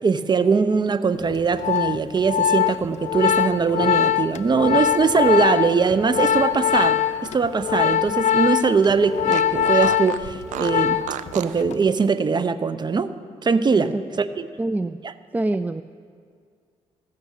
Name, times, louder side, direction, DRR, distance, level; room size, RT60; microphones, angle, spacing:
voice 1, 0.0-7.0 7.3-11.0 11.3-13.1 13.4-14.5, right 5 dB, 35° right, 12 dB, 0.7 m, -21 dB
Organ, 1.3-11.3 11.6-11.9, left 9 dB, 65° left, 0.4 m, -22 dB
Fart, 6.3-8.3 8.6-8.7 9.3-11.6, right 12 dB, 75° right, 0.4 m, -35 dB
voice 2, 14.6-15.0 15.3-15.8, right 2 dB, 15° right, 12 dB, 0.3 m, -24 dB
15.0 x 6.7 x 8.3 m, 2.2 s
cardioid pair, 70°, 13 cm